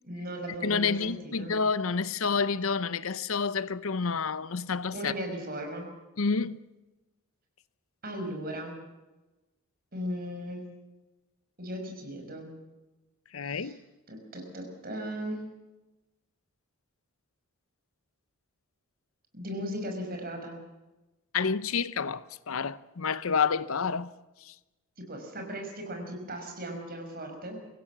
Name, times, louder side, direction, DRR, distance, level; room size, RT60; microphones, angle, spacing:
voice 1, 0.0-1.5 4.9-5.9 8.0-8.7 9.9-10.6 11.6-12.5 13.4-13.8 14.1-15.4 19.3-20.6 25.1-27.6, equal, 45° right, 5.7 m, -37 dB
voice 2, 0.6-5.1 6.2-6.6 13.3-13.8 21.3-24.1 24.4-24.5, left 5 dB, 70° left, 0.8 m, -29 dB
24.5 x 16.0 x 7.4 m
head